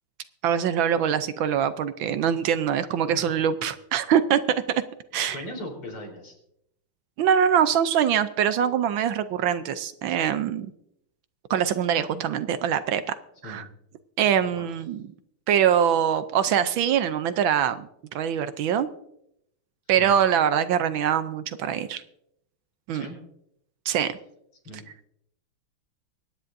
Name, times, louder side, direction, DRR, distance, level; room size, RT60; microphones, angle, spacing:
voice 1, 0.4-4.4 5.1-5.4 7.2-10.7 11.5-13.0 13.4-13.7 14.2-15.0 15.5-18.9 19.9-22.0 22.9-23.1 23.9-24.2, right 8 dB, 70° right, 12 dB, 1.4 m, -23 dB
voice 2, 5.2-6.3 13.4-13.7 14.6-14.7 20.0-20.2 22.9-23.2 24.6-24.8, equal, 80° left, 1 dB, 4.8 m, -38 dB
23.5 x 10.0 x 2.6 m, 0.76 s
omnidirectional pair, 2.4 m